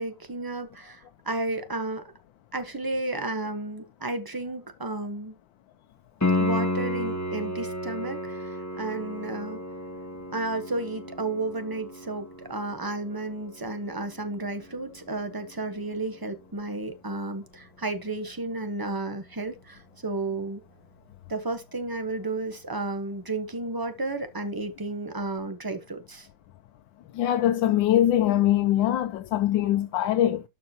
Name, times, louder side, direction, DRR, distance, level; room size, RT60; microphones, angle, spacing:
voice 1, 0.0-2.0 2.5-5.4 6.4-9.6 10.3-20.6 21.3-26.3, right 2 dB, 15° right, 0.9 m, -32 dB
Piano, 6.2-16.9 20.2-20.3, left 1 dB, 15° left, 0.6 m, -33 dB
voice 2, 27.1-30.4, left 12 dB, 90° left, 1.3 m, -22 dB
12.5 x 4.8 x 2.8 m
omnidirectional pair, 2.0 m